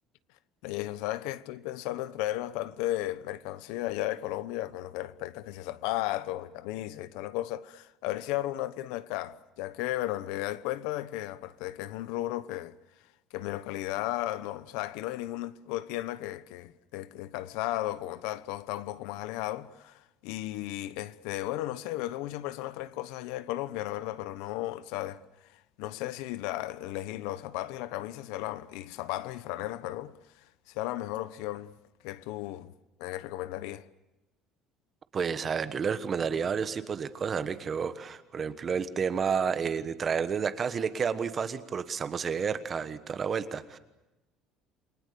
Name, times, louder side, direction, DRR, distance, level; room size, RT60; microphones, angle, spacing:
voice 1, 0.6-12.7 13.3-25.2 25.8-30.1 30.7-31.7 32.0-32.7 33.0-33.8, left 15 dB, 85° left, 1.0 m, -35 dB
voice 2, 35.1-43.8, right 6 dB, 25° right, 1.2 m, -30 dB
29.0 x 22.5 x 6.9 m
cardioid pair, 165°, 0 cm